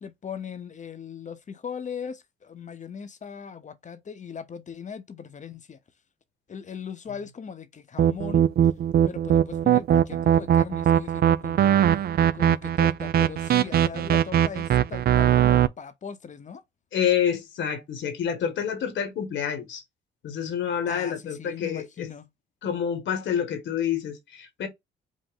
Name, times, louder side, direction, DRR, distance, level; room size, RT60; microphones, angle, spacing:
voice 1, 0.0-5.8 6.5-8.5 9.1-11.8 12.3-16.6 20.9-22.3, left 7 dB, 40° left, 0.8 m, -39 dB
sound 1, 8.0-15.7, right 10 dB, 50° right, 0.4 m, -20 dB
voice 2, 16.9-19.8 20.2-22.1 22.6-24.7, left 8 dB, 70° left, 1.4 m, -28 dB
5.2 x 2.1 x 3.8 m
cardioid pair, 90°, 20 cm